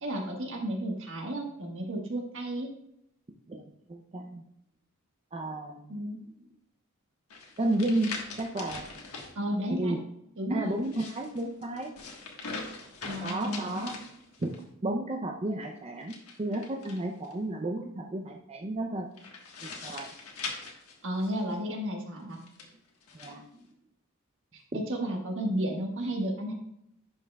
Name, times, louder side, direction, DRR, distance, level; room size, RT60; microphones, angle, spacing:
voice 1, 0.0-2.7 5.9-6.2 9.3-10.0 10.4-10.8 13.0-13.9 21.0-22.4 24.5-26.5, right 1 dB, 65° right, 1 dB, 1.5 m, -33 dB
voice 2, 3.9-4.4 5.3-5.9 7.6-8.8 9.7-10.0 10.5-11.9 13.2-14.0 14.4-14.6 14.8-19.1 19.8-20.1 23.1-23.4 24.7-24.8, right 1 dB, 30° right, 2 dB, 0.5 m, -32 dB
sound 1, 7.3-9.3 10.7-14.6 16.0-17.3 19.2-21.6 22.3-23.3, left 4 dB, 85° left, 1.4 m, -42 dB
11.0 x 5.6 x 2.3 m, 0.78 s
head